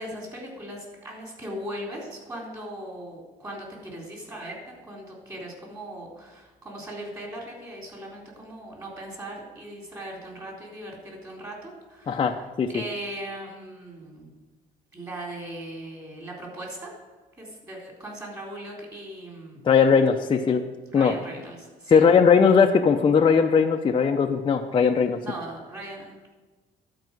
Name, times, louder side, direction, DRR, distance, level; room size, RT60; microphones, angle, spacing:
voice 1, 0.0-4.6 4.8-12.4 12.7-14.3 14.9-16.9 17.4-19.6 20.9-22.1 25.2-26.3, right 1 dB, 20° right, -2 dB, 3.8 m, -39 dB
voice 2, 12.1-12.7 19.6-20.6 20.9-21.1 21.9-25.2, left 6 dB, 30° left, 2 dB, 0.6 m, -19 dB
12.0 x 4.8 x 7.5 m, 1.3 s
cardioid pair, 110°, 17 cm